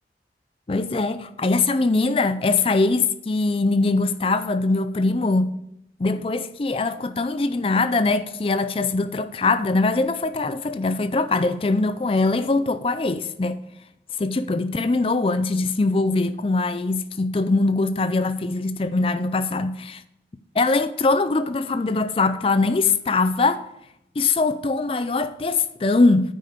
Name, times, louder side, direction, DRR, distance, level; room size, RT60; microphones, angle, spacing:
voice 1, 0.7-5.6 6.0-13.6 14.2-20.0 20.5-23.7 24.2-26.3, left 3 dB, 30° left, 0.4 m, -22 dB
9.2 x 5.2 x 6.5 m
head